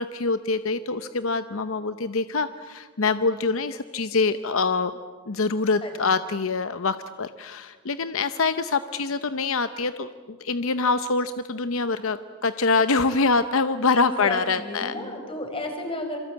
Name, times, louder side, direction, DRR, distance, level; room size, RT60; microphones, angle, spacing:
voice 1, 0.0-4.9 5.3-15.0, left 4 dB, 65° left, 12 dB, 0.8 m, -25 dB
voice 2, 13.9-16.2, left 1 dB, 25° left, 4 dB, 5.2 m, -33 dB
27.0 x 23.5 x 8.9 m, 1.5 s
head